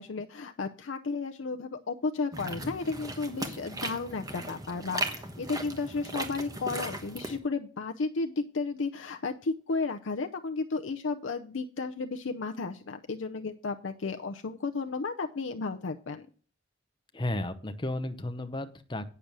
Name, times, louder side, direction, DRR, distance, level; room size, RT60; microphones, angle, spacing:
voice 1, 0.0-16.3, left 4 dB, 70° left, 6 dB, 0.6 m, -33 dB
sound 1, 2.3-7.4, right 2 dB, 20° right, 1.2 m, -37 dB
voice 2, 17.1-19.1, left 1 dB, 25° left, 8 dB, 0.8 m, -33 dB
8.7 x 6.9 x 6.0 m, 0.42 s
head